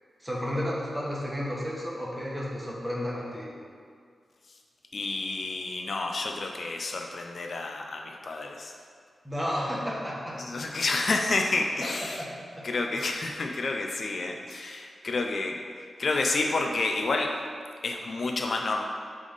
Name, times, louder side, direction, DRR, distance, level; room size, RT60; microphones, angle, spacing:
voice 1, 0.2-3.5 9.2-10.4 12.0-12.3 12.5-12.6, equal, 10° right, -5 dB, 1.4 m, -32 dB
voice 2, 4.9-8.7 10.4-12.2 12.6-15.6 16.0-17.3 17.8-18.8, left 3 dB, 55° left, 2 dB, 0.4 m, -29 dB
8.2 x 3.4 x 4.0 m, 2.1 s
wide cardioid pair, 90°, 0 cm